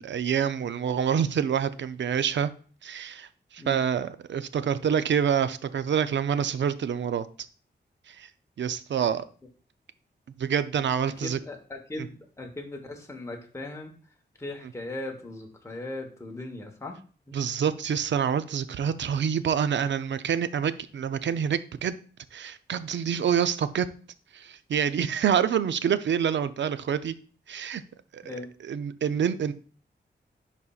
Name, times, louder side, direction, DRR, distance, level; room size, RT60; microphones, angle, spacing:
voice 1, 0.0-2.5 2.8-3.3 3.5-7.2 8.2-8.3 8.6-9.2 10.4-11.4 17.3-22.0 22.3-23.9 24.3-27.1 27.5-27.8 28.1-28.3 28.6-29.5, right 8 dB, 85° right, 13 dB, 0.5 m, -27 dB
voice 2, 11.2-13.9 14.4-17.0 17.3-17.4 28.2-28.5, left 2 dB, 15° left, 2 dB, 1.0 m, -38 dB
10.5 x 4.2 x 2.3 m, 0.41 s
wide cardioid pair, 170°, 18 cm